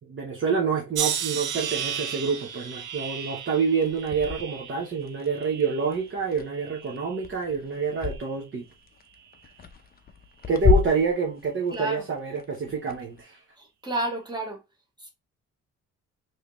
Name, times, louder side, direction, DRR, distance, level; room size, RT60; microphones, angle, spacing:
voice 1, 0.0-8.7 10.5-13.4, right 5 dB, 40° right, 0.9 m, -27 dB
sound 1, 0.9-6.1 6.5-7.2 8.0-8.3, right 8 dB, 80° right, 0.7 m, -34 dB
sound 2, 3.7-8.2 8.6-13.2, left 5 dB, 30° left, 0.6 m, -30 dB
voice 2, 11.7-12.0 13.6-14.6 15.0-15.1, right 1 dB, 15° right, 1.5 m, -31 dB
3.2 x 2.8 x 3.0 m
cardioid pair, 90°, 30 cm